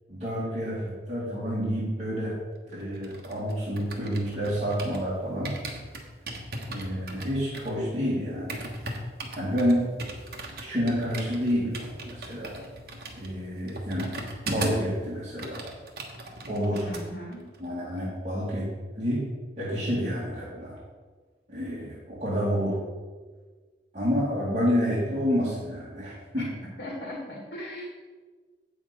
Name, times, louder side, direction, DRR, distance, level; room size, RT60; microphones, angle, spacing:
voice 1, 0.1-2.3 2.7-5.5 6.7-8.7 9.3-10.0 10.6-12.5 13.1-14.1 14.5-15.6 16.5-16.9 17.6-18.7 19.0-19.3 19.6-20.8 21.5-22.8 23.9-26.5, equal, 40° right, -9 dB, 2.1 m, -29 dB
sound 1, 2.8-5.1 5.4-14.9 15.2-17.0 17.3-17.6, right 2 dB, 55° right, 1.3 m, -38 dB
voice 2, 16.8-17.4 26.3-26.5 26.8-27.8, left 1 dB, 85° left, -1 dB, 1.6 m, -38 dB
8.4 x 7.0 x 5.0 m, 1.4 s
head